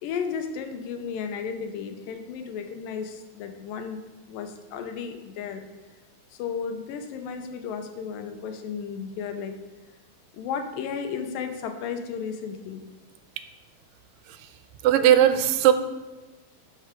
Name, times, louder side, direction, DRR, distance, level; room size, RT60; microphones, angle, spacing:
voice 1, 0.0-4.0 4.3-5.6 6.3-9.6 10.3-12.8, left 6 dB, 90° left, 6 dB, 2.5 m, -34 dB
voice 2, 14.8-15.7, right 11 dB, 90° right, 10 dB, 2.2 m, -17 dB
11.0 x 4.7 x 5.0 m, 1.1 s
omnidirectional pair, 3.8 m